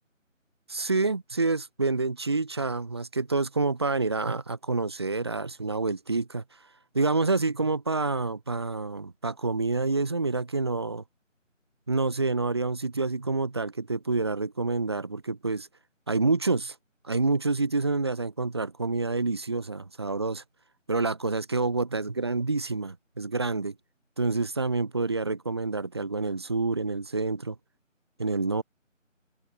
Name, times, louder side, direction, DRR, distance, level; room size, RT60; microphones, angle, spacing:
voice 1, 0.7-6.4 6.9-11.0 11.9-15.7 16.1-16.8 17.0-20.4 20.9-23.8 24.2-27.6 28.2-28.6, right 3 dB, 20° right, 5.5 m, -28 dB
open air
figure-of-eight pair, 170°, 39 cm